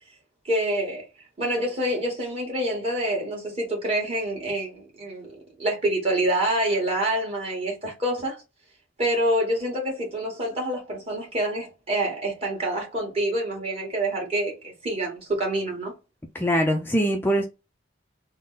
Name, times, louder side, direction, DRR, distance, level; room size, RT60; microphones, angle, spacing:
voice 1, 0.5-1.1 1.4-5.3 5.6-8.4 9.0-15.9, right 1 dB, 30° right, 1.8 m, -26 dB
voice 2, 16.3-17.5, equal, 10° left, 0.5 m, -22 dB
3.7 x 2.1 x 4.0 m
head